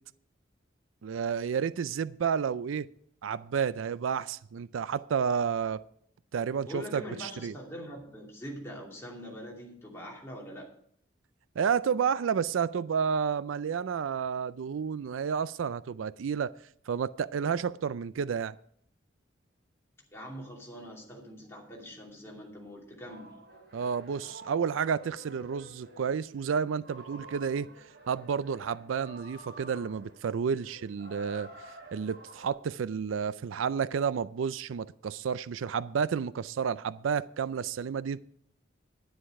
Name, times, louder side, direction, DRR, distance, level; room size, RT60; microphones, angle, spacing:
voice 1, 1.0-2.9 3.2-5.8 6.3-7.5 11.6-16.5 16.9-18.5 23.7-27.7 28.1-38.2, right 6 dB, 90° right, 0.4 m, -31 dB
voice 2, 6.6-10.7 20.1-23.3, equal, 15° left, 2.6 m, -43 dB
sound 1, 23.0-32.5, right 1 dB, 55° right, 3.5 m, -50 dB
10.5 x 10.0 x 4.7 m
head